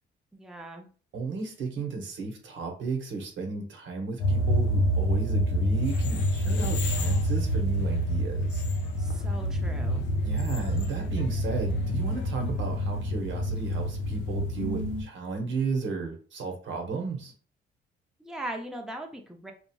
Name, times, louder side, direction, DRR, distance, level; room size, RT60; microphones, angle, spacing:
voice 1, 0.3-0.9 9.0-10.1 18.2-19.5, right 1 dB, 5° right, 3 dB, 0.5 m, -39 dB
voice 2, 1.1-8.6 10.2-17.3, right 4 dB, 70° right, 2 dB, 1.0 m, -34 dB
sound 1, 4.2-15.0, equal, 90° left, 0.8 m, -27 dB
sound 2, 5.8-12.3, left 7 dB, 65° left, 0.5 m, -43 dB
2.8 x 2.4 x 2.3 m, 0.40 s
cardioid pair, 90°, 20 cm